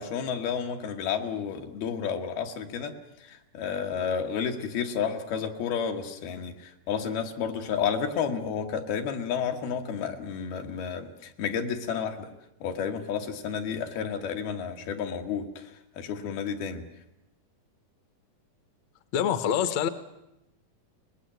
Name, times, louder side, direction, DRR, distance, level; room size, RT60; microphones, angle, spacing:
voice 1, 0.0-2.9 3.3-12.3 12.6-15.7 16.0-16.8, left 7 dB, 80° left, 4 dB, 3.5 m, -31 dB
voice 2, 19.1-19.9, left 9 dB, 60° left, 12 dB, 1.9 m, -25 dB
24.5 x 20.5 x 9.2 m, 0.90 s
omnidirectional pair, 4.3 m